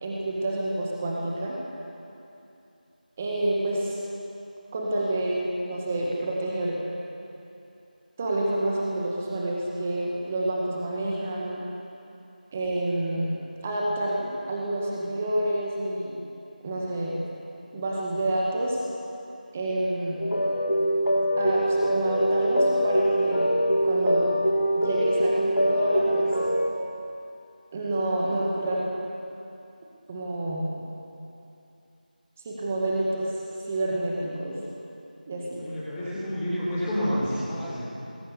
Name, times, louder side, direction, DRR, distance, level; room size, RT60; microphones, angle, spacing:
voice 1, 0.0-1.6 3.2-4.0 4.7-6.8 8.2-11.6 12.5-13.3 13.6-16.2 16.6-17.2 17.7-18.8 19.5-20.2 21.4-23.5 23.8-24.3 24.8-26.3 27.7-28.9 30.1-30.7 32.5-33.3 33.7-34.6 35.3-35.6, right 1 dB, 10° right, -3 dB, 1.8 m, -28 dB
sound 1, 20.2-26.7, equal, 90° left, 6.6 m, -23 dB
voice 2, 35.6-37.8, equal, 5° left, -10 dB, 4.1 m, -29 dB
29.0 x 21.0 x 6.9 m, 2.7 s
figure-of-eight pair, 175°, 5 cm